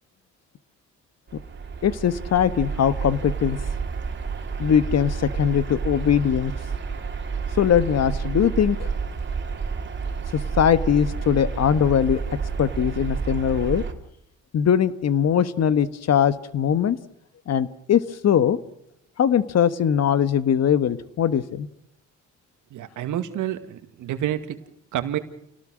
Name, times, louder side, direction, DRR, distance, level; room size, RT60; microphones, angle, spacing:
sound 1, 1.3-13.9, right 5 dB, 40° right, 3.1 m, -30 dB
voice 1, 1.8-3.6 4.6-6.5 7.6-8.9 10.3-13.8 14.5-17.0 17.5-18.6 19.2-21.7, left 8 dB, 60° left, 13 dB, 1.5 m, -21 dB
voice 2, 22.7-24.6 24.9-25.2, right 11 dB, 80° right, 9 dB, 2.1 m, -28 dB
29.5 x 18.5 x 6.4 m, 0.79 s
cardioid pair, 90°, 30 cm